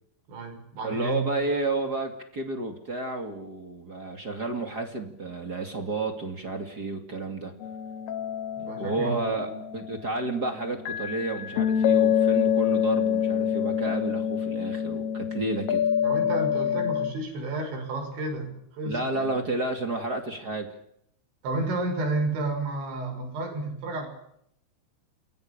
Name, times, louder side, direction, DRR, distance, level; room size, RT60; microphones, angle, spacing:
voice 1, 0.3-1.3 8.6-9.6 16.0-19.4 21.4-24.1, right 2 dB, 65° right, 4 dB, 8.5 m, -31 dB
voice 2, 0.8-7.5 8.8-15.8 18.8-20.7, right 3 dB, 30° right, 5 dB, 1.8 m, -31 dB
sound 1, 7.6-10.4 10.9-17.1, left 8 dB, 65° left, 3.0 m, -26 dB
29.0 x 22.5 x 6.9 m, 0.73 s
omnidirectional pair, 5.6 m